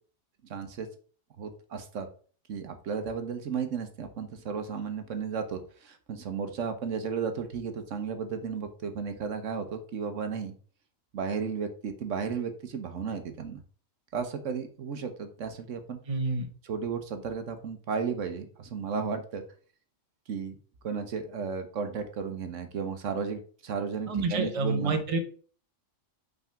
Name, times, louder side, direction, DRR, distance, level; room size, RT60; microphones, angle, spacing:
voice 1, 0.5-0.9 1.4-2.1 2.5-10.5 11.1-13.6 14.1-16.0 16.6-19.4 20.3-20.6 20.8-25.0, right 6 dB, 70° right, 8 dB, 1.2 m, -34 dB
voice 2, 16.1-16.5 24.1-25.2, right 3 dB, 30° right, 5 dB, 1.0 m, -28 dB
5.8 x 4.0 x 5.7 m, 0.42 s
omnidirectional pair, 1.3 m